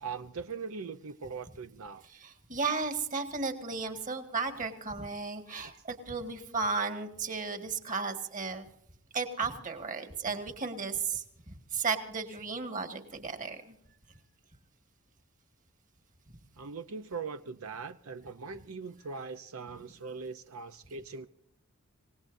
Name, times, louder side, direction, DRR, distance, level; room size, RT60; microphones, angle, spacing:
voice 1, 0.0-2.0 16.6-21.3, right 5 dB, 80° right, 9 dB, 0.7 m, -41 dB
voice 2, 2.2-8.6 9.1-11.2 11.7-13.8, right 4 dB, 40° right, 6 dB, 1.8 m, -34 dB
27.0 x 18.0 x 2.7 m, 0.68 s
head